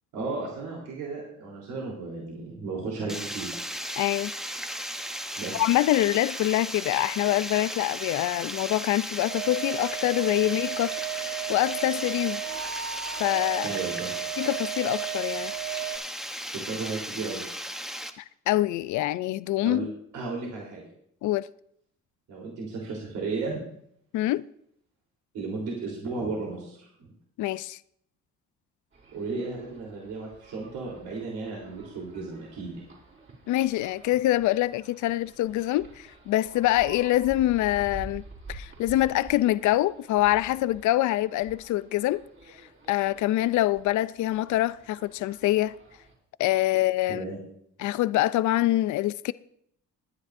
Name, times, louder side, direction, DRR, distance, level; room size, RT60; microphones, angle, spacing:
voice 1, 0.1-3.5 5.4-5.6 13.6-14.1 16.5-17.4 19.6-19.9 20.1-20.8 22.3-23.6 25.3-27.1 29.1-32.9 47.1-47.4, right 3 dB, 85° right, 3.6 m, -34 dB
Water, 3.1-18.1, equal, ahead, 0.9 m, -36 dB
voice 2, 4.0-4.3 5.5-12.4 13.2-13.7 14.4-15.5 18.2-19.9 21.2-21.5 24.1-24.5 27.4-27.8 33.5-38.2 38.5-42.2 42.9-45.7 46.4-47.3 47.8-49.3, left 15 dB, 75° left, 0.5 m, -25 dB
sound 1, 9.3-16.0, right 14 dB, 60° right, 1.5 m, -34 dB
sound 2, 28.9-46.1, right 2 dB, 40° right, 4.6 m, -49 dB
21.5 x 9.9 x 2.6 m
cardioid pair, 90°, 30 cm